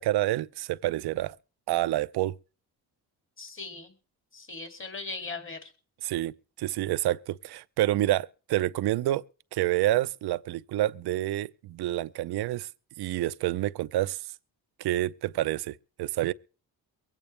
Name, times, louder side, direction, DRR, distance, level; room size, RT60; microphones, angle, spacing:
voice 1, 0.0-1.4 1.7-2.3 6.0-6.3 6.6-9.2 9.5-12.7 13.0-14.2 14.8-16.3, right 15 dB, 85° right, 0.7 m, -28 dB
voice 2, 3.4-3.9 4.3-5.7, left 3 dB, 30° left, 2.7 m, -39 dB
23.5 x 8.9 x 3.3 m
cardioid pair, 100°, 38 cm